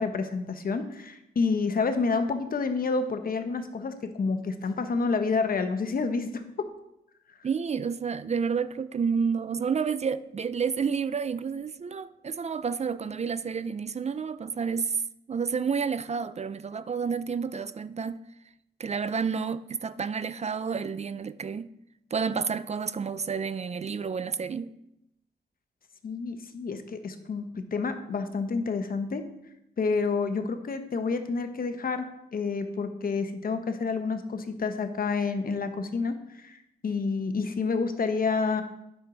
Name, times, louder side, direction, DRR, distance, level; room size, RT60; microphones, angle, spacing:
voice 1, 0.0-6.7 26.0-29.2 29.8-32.1 32.3-36.6 36.8-38.6, left 4 dB, 55° left, 0.9 m, -29 dB
voice 2, 7.4-15.0 15.3-18.2 18.8-21.7 22.1-24.7, right 6 dB, 40° right, 0.4 m, -30 dB
9.0 x 6.2 x 3.9 m
cardioid pair, 60°, 18 cm